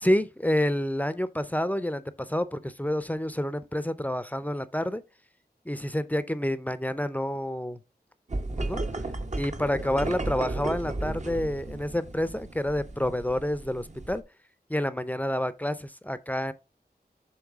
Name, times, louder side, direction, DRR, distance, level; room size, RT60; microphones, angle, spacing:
voice 1, 0.0-5.0 5.7-7.8 8.6-8.8 9.4-14.2 14.7-16.5, left 1 dB, 10° left, 0.6 m, -28 dB
sound 1, 8.3-14.2, right 2 dB, 45° right, 0.9 m, -34 dB
7.2 x 3.2 x 4.8 m
wide cardioid pair, 80°, 17 cm